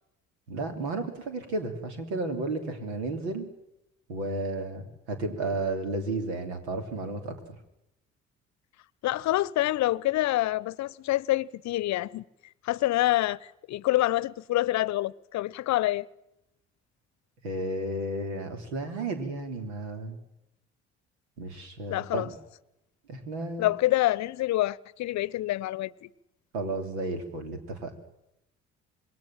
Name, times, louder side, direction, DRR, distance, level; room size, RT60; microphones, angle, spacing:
voice 1, 0.5-3.5 4.1-7.5 17.4-20.2 21.4-22.3 23.1-23.7 26.5-27.9, right 2 dB, 80° right, 3.2 m, -33 dB
voice 2, 9.0-12.2 12.6-16.1 21.9-22.3 23.6-26.1, left 16 dB, 55° left, 0.8 m, -27 dB
26.5 x 21.5 x 7.5 m
hypercardioid pair, 50°, 32 cm